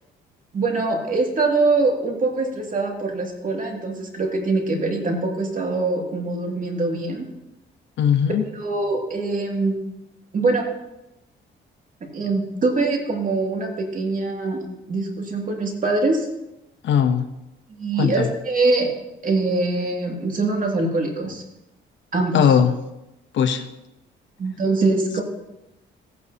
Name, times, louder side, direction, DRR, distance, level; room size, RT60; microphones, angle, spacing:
voice 1, 0.5-7.2 8.5-9.8 10.3-10.7 12.1-14.6 14.9-16.3 17.8-18.9 19.2-21.4 22.1-22.4 24.4-25.2, right 3 dB, 45° right, 1 dB, 2.4 m, -23 dB
voice 2, 8.0-8.4 16.8-17.3 18.0-18.3 22.3-22.7 23.3-23.6, left 8 dB, 70° left, 9 dB, 0.9 m, -18 dB
15.0 x 9.2 x 2.8 m, 0.94 s
cardioid pair, 90°, 20 cm